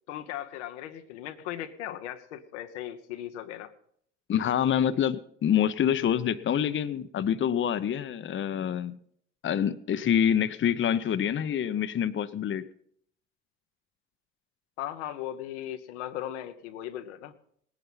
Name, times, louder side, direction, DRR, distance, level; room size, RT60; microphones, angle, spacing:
voice 1, 0.1-3.7 14.8-17.3, left 12 dB, 80° left, 8 dB, 1.1 m, -37 dB
voice 2, 4.3-9.0 9.4-12.7, left 9 dB, 35° left, 12 dB, 0.8 m, -26 dB
18.5 x 9.9 x 5.6 m, 0.66 s
hypercardioid pair, 60°, 35 cm